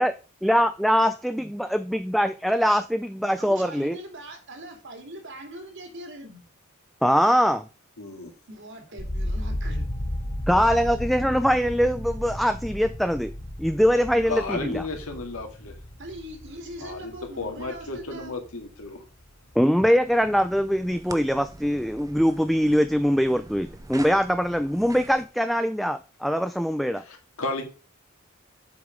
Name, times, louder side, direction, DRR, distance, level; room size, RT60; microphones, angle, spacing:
voice 1, 0.4-4.0 7.0-7.6 10.5-13.3 13.6-14.8 19.6-27.0, equal, ahead, 0.3 m, -22 dB
voice 2, 3.4-6.4 8.5-9.9 14.1-14.4 16.0-18.3, equal, 60° right, 2.3 m, -41 dB
voice 3, 8.0-8.3 14.3-15.7 16.8-19.0 27.0-27.7, left 3 dB, 80° left, 2.1 m, -33 dB
sound 1, 9.0-19.0 19.3-20.0, left 1 dB, 20° left, 0.9 m, -34 dB
sound 2, 20.0-25.3, right 2 dB, 15° right, 0.7 m, -44 dB
8.0 x 5.2 x 5.1 m
head